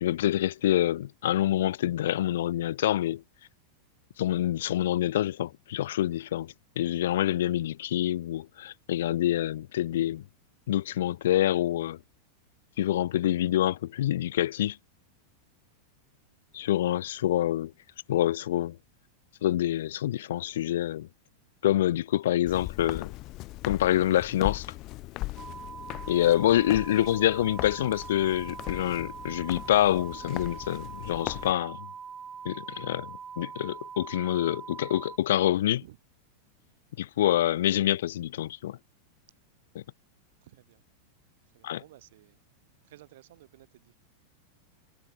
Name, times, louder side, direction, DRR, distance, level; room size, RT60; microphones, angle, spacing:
voice 1, 0.0-3.2 4.2-10.2 10.7-12.0 12.8-14.8 16.5-17.7 18.1-18.8 19.4-21.1 21.6-23.1 23.7-24.7 26.1-31.9 32.4-35.8 37.0-38.8 41.6-41.8, left 13 dB, 60° left, 0.4 m, -26 dB
Walk footsteps, 22.5-31.5, left 19 dB, 40° left, 0.9 m, -39 dB
sound 1, 25.4-35.2, right 6 dB, 20° right, 5.2 m, -43 dB
voice 2, 40.4-40.8 41.5-42.4 42.8-44.0, right 15 dB, 55° right, 7.3 m, -55 dB
figure-of-eight pair, 90°, 0 cm